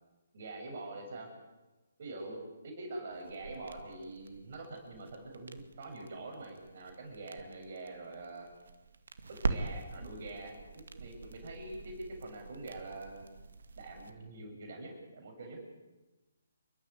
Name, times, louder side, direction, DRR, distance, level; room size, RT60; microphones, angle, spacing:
voice 1, 0.3-1.3 2.0-8.5 9.3-13.2 13.8-15.6, right 2 dB, 50° right, 2 dB, 7.3 m, -44 dB
sound 1, 3.1-14.1, right 3 dB, 65° right, 2.3 m, -43 dB
29.0 x 14.0 x 9.8 m, 1.1 s
figure-of-eight pair, 140°, 0 cm